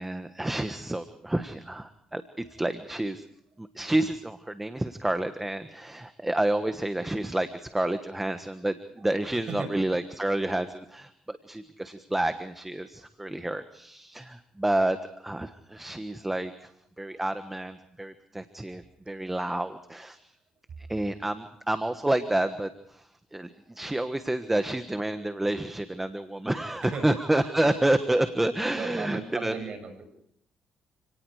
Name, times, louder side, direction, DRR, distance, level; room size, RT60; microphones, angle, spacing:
voice 1, 0.0-3.2 3.6-16.5 17.0-20.3 20.9-29.6, right 1 dB, 10° right, 9 dB, 1.4 m, -29 dB
voice 2, 28.7-30.0, right 5 dB, 55° right, 7 dB, 6.5 m, -35 dB
29.5 x 18.5 x 4.9 m, 0.72 s
cardioid pair, 85°, 2 cm